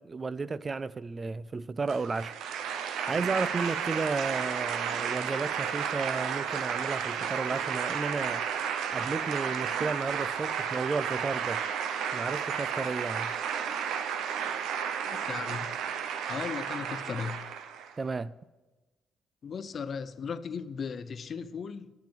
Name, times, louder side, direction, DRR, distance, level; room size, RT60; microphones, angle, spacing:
voice 1, 0.0-2.3 2.9-8.4 8.9-11.6 12.1-13.3 18.0-18.3, right 4 dB, 30° right, 0.3 m, -33 dB
sound 1, 1.9-17.9, right 7 dB, 85° right, 0.7 m, -32 dB
voice 2, 15.0-15.7 16.3-17.5 19.4-21.9, left 6 dB, 50° left, 0.6 m, -37 dB
10.5 x 5.9 x 8.9 m
cardioid pair, 90°, 0 cm